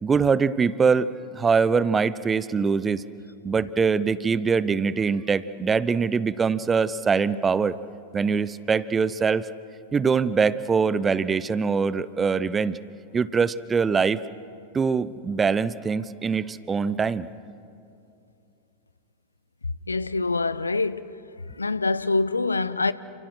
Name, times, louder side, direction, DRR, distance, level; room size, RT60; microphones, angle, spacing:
voice 1, 0.0-1.1 1.3-3.0 3.4-7.8 8.1-9.5 9.9-12.8 13.1-14.2 14.7-17.3, right 5 dB, 20° right, 0.8 m, -23 dB
voice 2, 19.9-21.1 21.5-22.9, left 3 dB, 80° left, 0.7 m, -25 dB
30.0 x 28.0 x 6.4 m
figure-of-eight pair, 90°, 0 cm